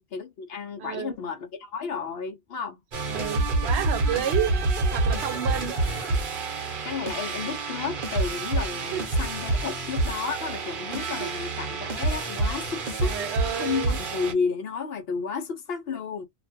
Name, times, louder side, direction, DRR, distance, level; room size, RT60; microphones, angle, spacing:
voice 1, 0.0-2.8 5.7-6.3 6.8-16.3, left 5 dB, 70° left, 0.8 m, -32 dB
voice 2, 0.8-1.2 3.0-4.5 4.9-5.8 8.9-9.0 11.1-11.3 13.0-14.0, right 10 dB, 85° right, 0.9 m, -30 dB
sound 1, 2.9-14.3, right 3 dB, 55° right, 0.9 m, -28 dB
2.5 x 2.2 x 2.6 m
omnidirectional pair, 1.1 m